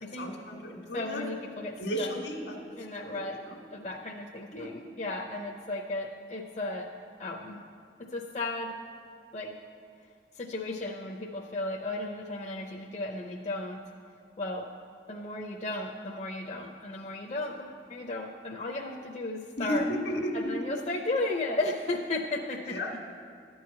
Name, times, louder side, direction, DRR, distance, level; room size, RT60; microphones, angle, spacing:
voice 1, 0.2-1.2 1.8-2.6 3.0-3.6 4.5-4.7 19.6-20.7 22.7-23.0, equal, 80° left, 1 dB, 1.5 m, -34 dB
voice 2, 0.9-2.1 2.8-3.4 3.7-6.9 7.2-7.6 8.1-8.7 9.3-9.5 10.3-13.8 14.4-14.7 15.1-19.9 20.3-23.0, left 2 dB, 40° left, 1 dB, 0.5 m, -34 dB
11.5 x 4.7 x 8.3 m, 2.2 s
head